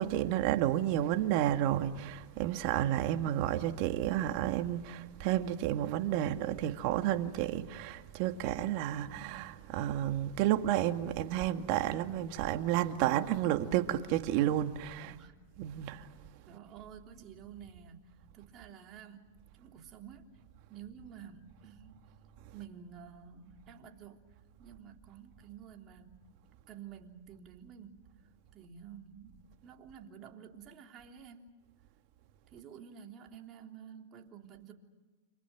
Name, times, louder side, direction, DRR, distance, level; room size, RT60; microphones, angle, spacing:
voice 1, 0.0-15.1 15.6-16.1, right 12 dB, 55° right, 2.0 m, -31 dB
voice 2, 15.0-15.4 15.8-15.9 16.5-18.0 18.3-19.3 19.6-20.3 20.7-22.0 22.5-24.2 24.6-26.2 26.7-28.1 28.5-31.6 32.5-34.7, right 8 dB, 40° right, 3.4 m, -51 dB
29.5 x 27.5 x 6.1 m
hypercardioid pair, 115°, 0 cm